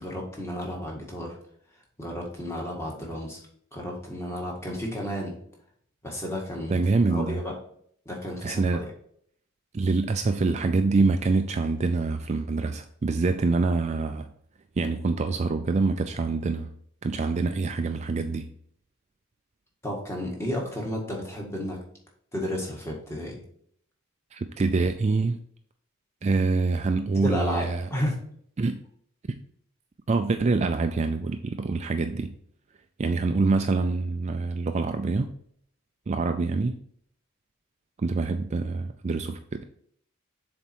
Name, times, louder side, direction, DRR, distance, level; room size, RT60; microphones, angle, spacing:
voice 1, 0.0-1.4 2.0-3.4 3.7-5.4 6.0-7.5 8.0-8.8 19.8-21.8 22.3-23.4 27.1-28.2, left 1 dB, 15° left, -1 dB, 1.7 m, -32 dB
voice 2, 6.7-7.4 8.4-8.8 9.7-14.3 14.8-16.7 17.0-18.5 24.3-25.4 26.2-27.9 28.6-28.8 29.3-29.4 30.1-32.3 33.0-35.3 36.1-36.8 38.0-39.6, right 3 dB, 30° right, 7 dB, 0.4 m, -25 dB
6.9 x 4.3 x 4.5 m, 0.64 s
head